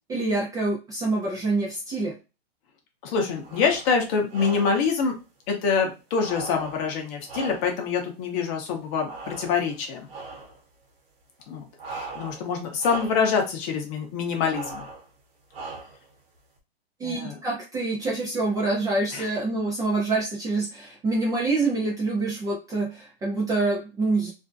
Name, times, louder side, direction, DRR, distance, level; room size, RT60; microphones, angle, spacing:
voice 1, 0.1-2.1 17.0-24.3, right 3 dB, 10° right, -4 dB, 0.4 m, -26 dB
voice 2, 3.0-5.2 5.5-10.1 11.5-14.9 17.0-17.4 19.1-19.3, left 5 dB, 35° left, 3 dB, 0.7 m, -26 dB
sound 1, 3.4-3.9 4.3-4.9 6.2-7.9 9.0-9.8 10.1-10.6 11.8-12.5 12.8-13.3 14.5-15.1 15.5-16.1, right 3 dB, 65° right, 1.0 m, -39 dB
2.5 x 2.1 x 2.5 m, 0.28 s
hypercardioid pair, 135°, 31 cm